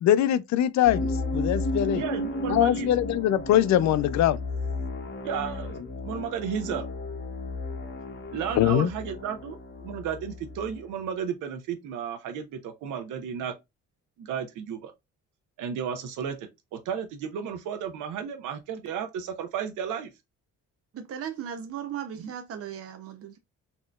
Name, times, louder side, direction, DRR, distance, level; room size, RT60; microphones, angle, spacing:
voice 1, 0.0-2.0 2.5-4.4 8.6-8.9, left 12 dB, 65° left, 0.5 m, -22 dB
sound 1, 0.8-10.8, left 2 dB, 40° left, 1.4 m, -33 dB
voice 2, 1.9-2.9 5.2-5.8 6.0-6.8 8.3-13.5 14.2-14.9 15.6-20.1 22.2-22.3, right 7 dB, 90° right, 0.9 m, -33 dB
voice 3, 20.9-23.4, right 9 dB, 50° right, 0.7 m, -37 dB
4.2 x 3.0 x 2.3 m
cardioid pair, 90°, 30 cm